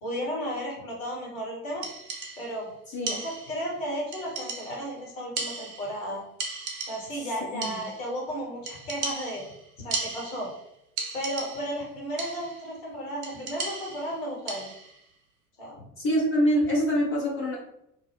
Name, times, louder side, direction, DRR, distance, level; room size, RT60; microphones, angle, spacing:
voice 1, 0.0-1.9 2.4-2.7 3.1-6.2 6.9-9.4 9.8-10.5 11.1-14.7 15.6-15.8, equal, 60° left, -3 dB, 1.3 m, -34 dB
sound 1, 1.8-2.6 3.1-3.7 4.1-4.9 5.4-6.1 6.4-7.3 7.6-8.2 8.7-10.6 11.0-11.8 12.2-12.7 13.2-15.0, right 4 dB, 60° right, 0.7 m, -36 dB
voice 2, 7.5-7.8 16.0-17.6, equal, 30° left, -3 dB, 0.7 m, -25 dB
2.7 x 2.2 x 3.4 m, 0.81 s
figure-of-eight pair, 65°, 46 cm